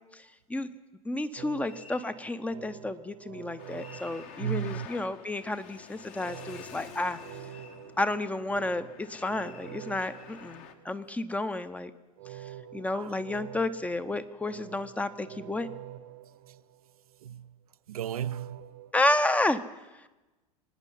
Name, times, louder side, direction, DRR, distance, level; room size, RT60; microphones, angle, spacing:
voice 1, 0.1-0.7 1.0-7.2 8.0-11.9 12.7-15.7 18.9-19.6, left 2 dB, 5° left, 0.6 m, -31 dB
sound 1, 1.4-5.2 6.2-11.2 12.2-17.2 18.2-18.9, right 12 dB, 50° right, 0.9 m, -47 dB
sound 2, 1.6-2.1 3.7-4.3 6.1-7.8 9.1-10.5, left 4 dB, 75° left, 5.7 m, -54 dB
Traffic noise roadway noise, 3.6-10.7, left 8 dB, 40° left, 1.1 m, -49 dB
voice 2, 4.4-4.9 7.7-7.8 12.9-13.2 17.2-17.5 17.9-18.7, right 10 dB, 70° right, 0.4 m, -34 dB
25.0 x 9.8 x 5.6 m
figure-of-eight pair, 85°, 20 cm